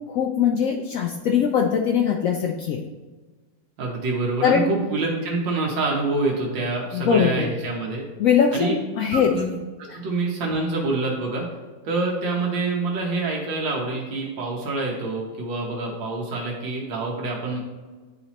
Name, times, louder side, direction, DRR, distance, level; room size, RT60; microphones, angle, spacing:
voice 1, 0.1-2.8 4.4-4.7 6.9-7.5 8.2-9.3 9.9-10.0, left 7 dB, 85° left, 1 dB, 0.7 m, -21 dB
voice 2, 3.8-8.0 8.5-8.8 9.1-9.6 9.9-11.5 11.8-17.6, right 3 dB, 85° right, -2 dB, 1.7 m, -26 dB
9.7 x 4.2 x 2.9 m, 1.3 s
omnidirectional pair, 2.0 m